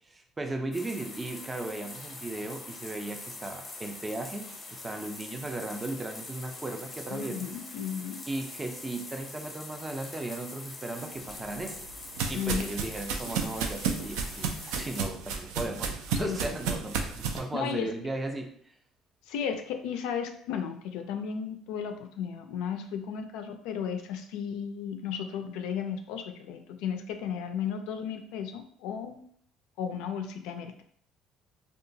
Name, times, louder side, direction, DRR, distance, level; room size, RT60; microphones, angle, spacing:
voice 1, 0.1-7.5 8.3-11.9 12.3-18.5, right 2 dB, 20° right, 4 dB, 0.4 m, -36 dB
sound 1, 0.7-15.0, left 2 dB, 25° left, 0.6 m, -44 dB
voice 2, 7.1-8.2 12.3-12.7 16.1-16.7 17.5-17.9 19.3-29.2 29.8-30.8, left 7 dB, 80° left, 6 dB, 0.3 m, -34 dB
sound 2, 11.3-17.4, right 6 dB, 85° right, 0.3 m, -33 dB
2.8 x 2.2 x 2.6 m, 0.63 s
cardioid pair, 105°, 0 cm